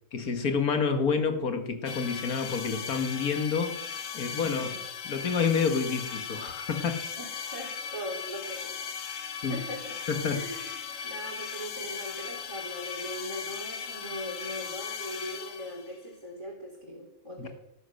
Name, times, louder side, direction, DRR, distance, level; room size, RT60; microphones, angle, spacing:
voice 1, 0.1-3.8 4.1-4.7 5.1-7.0 9.4-9.6 10.1-10.4 17.4-17.5, left 5 dB, 90° left, 7 dB, 2.0 m, -28 dB
sound 1, 1.9-16.0, left 7 dB, 65° left, 1.3 m, -38 dB
voice 2, 4.4-4.8 7.2-8.8 9.5-10.0 10.3-17.5, equal, 20° right, -4 dB, 3.7 m, -40 dB
18.5 x 11.0 x 6.5 m, 0.84 s
omnidirectional pair, 1.5 m